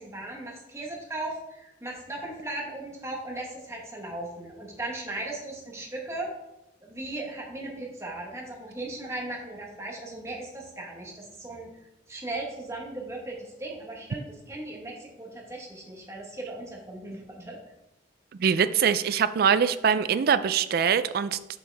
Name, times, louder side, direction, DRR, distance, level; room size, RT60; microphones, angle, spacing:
voice 1, 0.0-6.3 6.8-11.7 12.1-17.6 19.5-19.7, right 2 dB, 15° right, -2 dB, 1.3 m, -37 dB
voice 2, 18.4-21.4, right 7 dB, 55° right, 13 dB, 0.3 m, -23 dB
6.5 x 5.7 x 3.4 m, 0.94 s
head